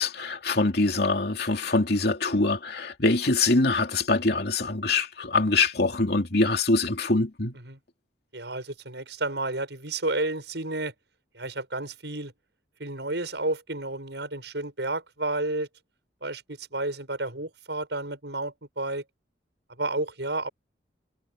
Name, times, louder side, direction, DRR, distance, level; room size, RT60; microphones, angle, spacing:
voice 1, 0.0-7.5, left 3 dB, 65° left, 2.7 m, -24 dB
voice 2, 8.3-10.9 11.3-12.3 12.8-15.7 16.2-19.0 19.7-20.5, right 2 dB, 75° right, 7.5 m, -31 dB
head